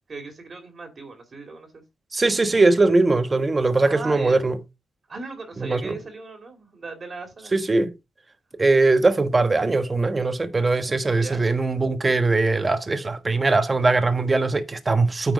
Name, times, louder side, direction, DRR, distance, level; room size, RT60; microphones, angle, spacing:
voice 1, 0.1-1.8 3.8-4.4 5.1-7.5 11.2-11.4, right 3 dB, 40° right, 2.3 m, -37 dB
voice 2, 2.1-4.6 5.6-6.0 7.5-7.9 8.6-15.3, right 3 dB, 25° right, 1.3 m, -21 dB
9.3 x 4.5 x 5.0 m
cardioid pair, 90°, 0 cm